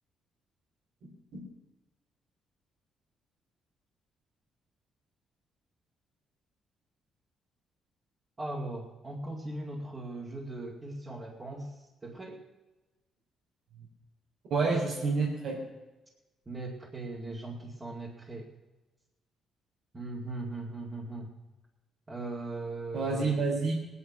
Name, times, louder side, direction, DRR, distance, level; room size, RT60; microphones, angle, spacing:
voice 1, 8.4-12.4 16.5-18.5 19.9-21.3 22.1-23.4, right 2 dB, 25° right, -4 dB, 2.3 m, -39 dB
voice 2, 14.5-15.6 22.9-23.7, right 4 dB, 80° right, -4 dB, 3.4 m, -28 dB
18.5 x 9.9 x 6.0 m, 1.1 s
cardioid pair, 90°, 0 cm